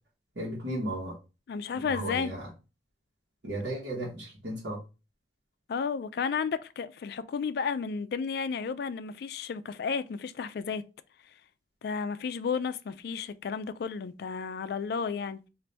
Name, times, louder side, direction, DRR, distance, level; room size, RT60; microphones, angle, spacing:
voice 1, 0.3-1.2 1.7-2.5 3.4-4.8, right 1 dB, 75° right, 1.2 m, -35 dB
voice 2, 1.5-2.3 5.7-10.8 11.8-15.4, left 5 dB, 60° left, 0.3 m, -32 dB
4.0 x 2.5 x 3.3 m
head